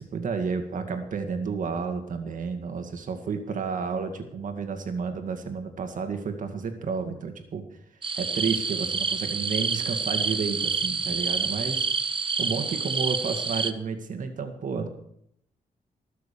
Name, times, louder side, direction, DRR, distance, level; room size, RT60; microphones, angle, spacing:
voice 1, 0.0-7.6 8.2-11.9 12.4-14.9, right 5 dB, 60° right, 7 dB, 2.0 m, -31 dB
sound 1, 8.0-13.7, right 5 dB, 35° right, 0.9 m, -28 dB
20.0 x 6.7 x 6.9 m, 0.72 s
cardioid pair, 100°, 15 cm